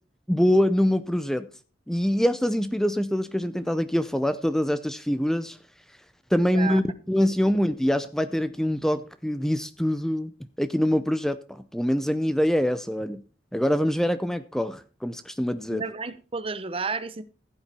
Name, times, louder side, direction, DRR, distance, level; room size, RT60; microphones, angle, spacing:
voice 1, 0.3-1.5 1.9-5.6 6.3-10.3 10.6-13.2 13.5-15.8, equal, 5° left, 0.5 m, -24 dB
voice 2, 15.7-17.2, right 4 dB, 30° right, 0.9 m, -32 dB
15.5 x 9.0 x 4.2 m
head